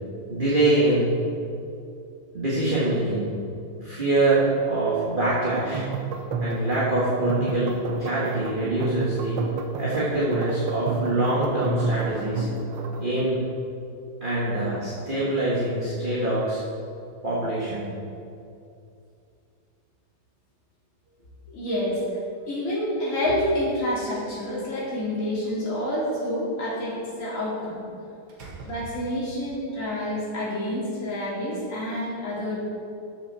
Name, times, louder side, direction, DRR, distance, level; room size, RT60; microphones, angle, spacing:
voice 1, 0.3-1.1 2.3-3.4 3.8-5.9 6.4-9.4 9.8-12.5 13.0-13.4 14.2-16.6 17.2-17.9, right 2 dB, 30° right, -7 dB, 1.6 m, -24 dB
sound 1, 5.5-13.1, right 4 dB, 90° right, 1.6 m, -30 dB
voice 2, 21.5-22.0 22.5-27.8 28.7-32.6, left 1 dB, 45° left, -7 dB, 2.8 m, -28 dB
Slam, 24.5-25.5 27.6-27.9 28.3-29.5, right 4 dB, 65° right, 1.9 m, -43 dB
13.0 x 7.0 x 4.3 m, 2.5 s
omnidirectional pair, 2.0 m